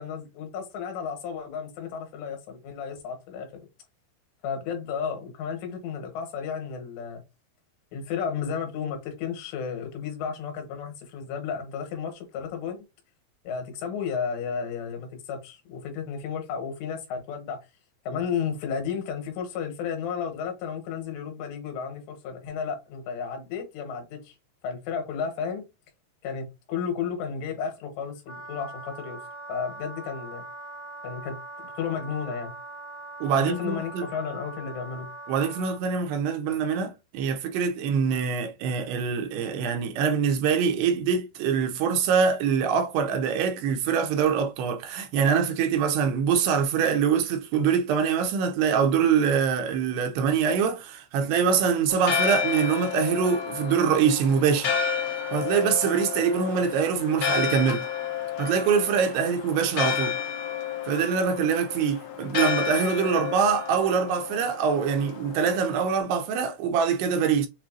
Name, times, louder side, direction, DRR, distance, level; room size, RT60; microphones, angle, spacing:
voice 1, 0.0-3.5 4.4-7.2 7.9-12.8 13.5-17.6 18.1-24.4 24.6-25.6 26.2-29.2 29.5-30.4 31.0-31.4 31.8-32.5 33.3-35.1, left 6 dB, 85° left, 3.4 m, -33 dB
Wind instrument woodwind instrument, 28.2-35.8, right 2 dB, 50° left, 0.5 m, -41 dB
voice 2, 33.2-34.0 35.3-54.7 55.3-57.9 58.4-60.2 60.9-67.5, right 6 dB, 85° right, 2.7 m, -24 dB
Church bell, 51.9-66.0, left 7 dB, 70° left, 2.3 m, -31 dB
7.3 x 2.6 x 2.7 m
omnidirectional pair, 5.0 m